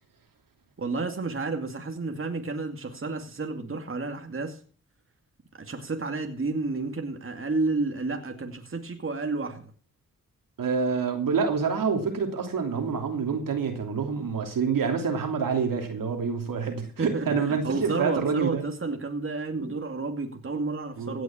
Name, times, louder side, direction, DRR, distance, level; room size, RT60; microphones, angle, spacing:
voice 1, 0.8-4.6 5.6-9.6 17.0-21.2, right 3 dB, 35° right, 2.4 m, -31 dB
voice 2, 10.6-18.6 19.6-19.8 21.0-21.2, right 5 dB, 70° right, 3.0 m, -27 dB
17.0 x 6.3 x 7.3 m
cardioid pair, 55°, 34 cm